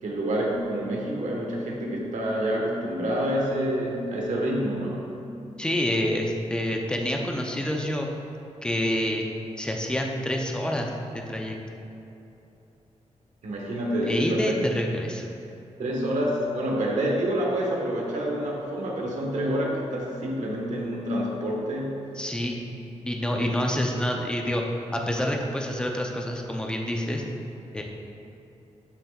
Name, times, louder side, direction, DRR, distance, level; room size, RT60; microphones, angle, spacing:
voice 1, 0.0-5.1 13.4-14.5 15.8-22.0 23.3-23.5, right 1 dB, 80° right, -2 dB, 1.3 m, -27 dB
voice 2, 5.6-8.1 8.6-9.3 9.6-11.6 14.1-15.2 22.2-22.6 23.1-24.6 24.9-27.2 27.7-27.8, left 1 dB, 5° left, 1 dB, 0.6 m, -27 dB
11.5 x 6.4 x 2.4 m, 2.9 s
wide cardioid pair, 175°, 12 cm